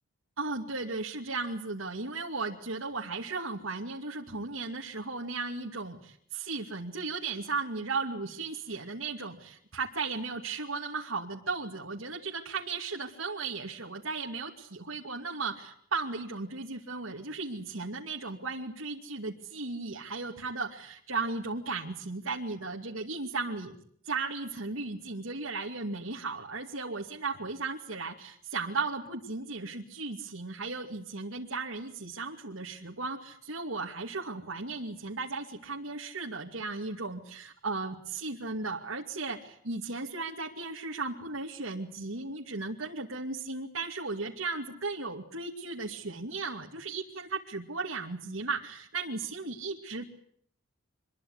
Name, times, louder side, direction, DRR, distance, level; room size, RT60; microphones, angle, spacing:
voice 1, 0.4-23.8 24.0-50.0, right 3 dB, 90° right, 0 dB, 2.5 m, -36 dB
25.5 x 22.0 x 8.0 m, 0.65 s
head